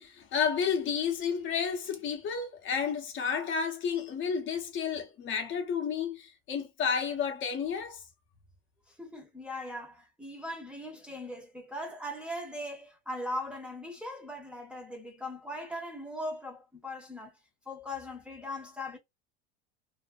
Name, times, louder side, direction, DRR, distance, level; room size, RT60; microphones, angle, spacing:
voice 1, 0.0-8.0, left 6 dB, 40° left, 0.7 m, -31 dB
voice 2, 9.0-17.3 17.7-19.0, left 1 dB, 5° right, 0.7 m, -39 dB
2.5 x 2.1 x 2.4 m
supercardioid pair, 110°, 30 cm